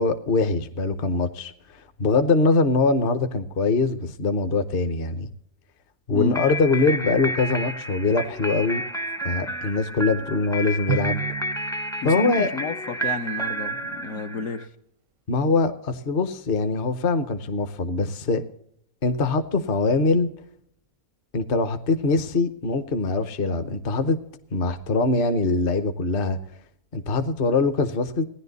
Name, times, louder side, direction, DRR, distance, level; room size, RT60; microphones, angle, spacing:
voice 1, 0.0-1.5 2.0-5.3 6.1-8.8 9.2-11.2 12.0-12.5 15.3-18.4 19.0-20.3 21.3-24.2 24.5-26.4 26.9-28.2, left 3 dB, 45° left, 9 dB, 0.9 m, -23 dB
sound 1, 6.3-14.6, right 1 dB, 5° left, 0.4 m, -31 dB
Drum, 10.9-13.1, right 13 dB, 90° right, 1.2 m, -32 dB
voice 2, 12.0-14.7, left 6 dB, 65° left, 6 dB, 1.2 m, -31 dB
16.5 x 10.5 x 4.0 m, 0.70 s
omnidirectional pair, 1.5 m